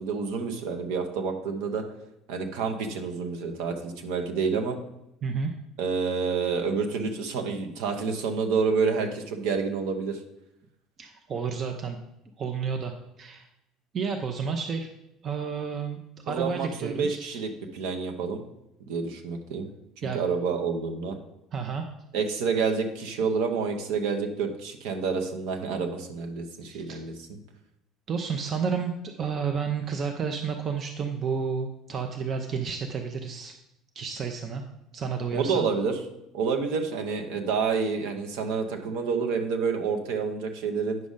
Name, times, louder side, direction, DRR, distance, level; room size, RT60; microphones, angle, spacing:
voice 1, 0.0-1.8 2.3-4.8 5.8-10.2 16.3-18.4 18.9-19.7 20.0-21.2 22.1-27.4 35.3-36.0 36.3-41.0, right 5 dB, 60° right, 4 dB, 1.1 m, -28 dB
voice 2, 11.0-12.0 12.4-12.9 13.2-13.5 13.9-14.9 15.2-16.0 16.2-17.4 20.0-20.3 21.5-21.8 26.6-27.0 28.1-33.5 33.9-34.6 34.9-35.7, right 6 dB, 40° right, 4 dB, 0.7 m, -31 dB
9.4 x 6.1 x 3.8 m, 0.85 s
figure-of-eight pair, 60°, 0 cm